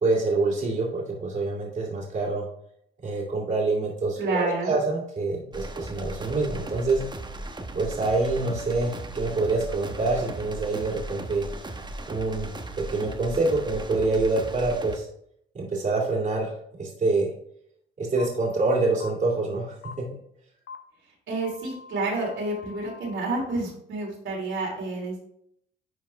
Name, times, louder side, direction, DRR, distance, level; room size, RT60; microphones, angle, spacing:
voice 1, 0.0-2.4 3.0-7.0 7.7-11.4 12.1-12.5 12.8-15.1 15.5-16.5 16.8-17.3 18.0-20.1, right 3 dB, 40° right, -3 dB, 2.4 m, -26 dB
voice 2, 4.2-4.7 21.3-25.2, right 2 dB, 75° right, -3 dB, 3.4 m, -29 dB
sound 1, 5.5-15.0, right 2 dB, 20° right, 1.1 m, -37 dB
sound 2, 18.2-18.3 19.0-19.1 19.8-19.9 20.7-20.8 21.4-23.5, left 4 dB, 70° left, 1.1 m, -44 dB
10.0 x 4.7 x 3.4 m, 0.70 s
cardioid pair, 90°, 20 cm